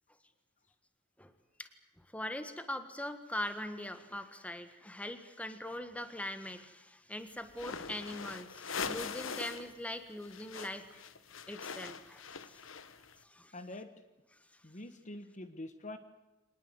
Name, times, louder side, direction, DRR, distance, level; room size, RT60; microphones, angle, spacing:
voice 1, 2.0-11.0 11.5-12.6 13.2-13.6, left 1 dB, 5° left, 9 dB, 1.6 m, -42 dB
sound 1, 7.5-9.7 10.0-13.1, left 5 dB, 75° left, 1.3 m, -42 dB
voice 2, 13.5-13.9 14.6-16.0, left 1 dB, 35° left, 10 dB, 1.3 m, -45 dB
25.0 x 19.5 x 8.1 m, 1.1 s
head